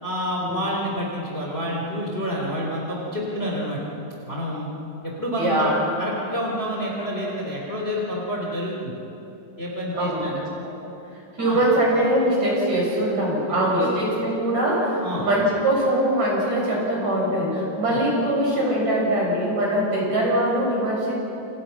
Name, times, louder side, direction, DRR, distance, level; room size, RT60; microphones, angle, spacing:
voice 1, 0.0-3.8 4.3-4.7 5.0-9.0 9.6-10.4 11.4-11.6 13.8-13.9 15.0-15.3 17.9-18.0, equal, 15° left, -2 dB, 3.8 m, -28 dB
voice 2, 5.4-5.7 9.9-10.9 11.4-21.1, right 1 dB, 45° right, -3 dB, 7.9 m, -22 dB
29.5 x 29.0 x 6.1 m, 3.0 s
omnidirectional pair, 4.4 m